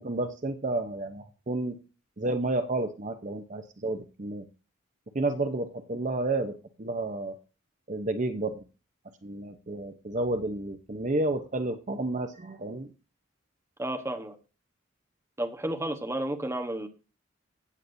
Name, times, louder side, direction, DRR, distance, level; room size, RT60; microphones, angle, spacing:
voice 1, 0.0-1.8 2.2-4.4 5.1-6.5 6.8-7.3 7.9-8.6 9.2-12.9, right 2 dB, 40° right, 7 dB, 0.7 m, -31 dB
voice 2, 13.8-14.3 15.4-16.9, right 1 dB, 15° right, 4 dB, 1.1 m, -32 dB
15.5 x 8.3 x 2.7 m, 0.33 s
head